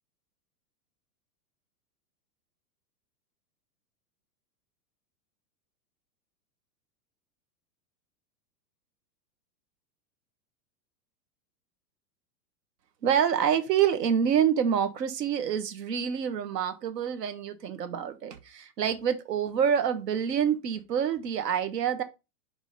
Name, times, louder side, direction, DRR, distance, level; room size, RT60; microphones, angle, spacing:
voice 1, 13.0-22.0, right 8 dB, 90° right, 1.3 m, -27 dB
4.9 x 3.6 x 5.3 m
supercardioid pair, 165°, 48 cm